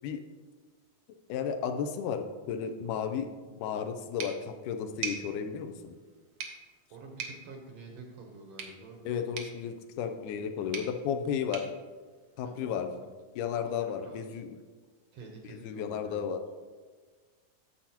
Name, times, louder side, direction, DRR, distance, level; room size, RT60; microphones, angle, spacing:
voice 1, 1.3-3.3 3.6-6.0 9.1-11.6 12.4-12.9 13.4-14.5 15.6-16.4, left 7 dB, 90° left, 6 dB, 2.2 m, -33 dB
sound 1, 4.2-12.9, right 6 dB, 90° right, 1.1 m, -45 dB
voice 2, 6.9-9.3 12.4-13.1 13.5-14.4 15.1-16.3, right 3 dB, 70° right, 1 dB, 1.7 m, -48 dB
9.8 x 7.2 x 2.8 m, 1.4 s
omnidirectional pair, 3.5 m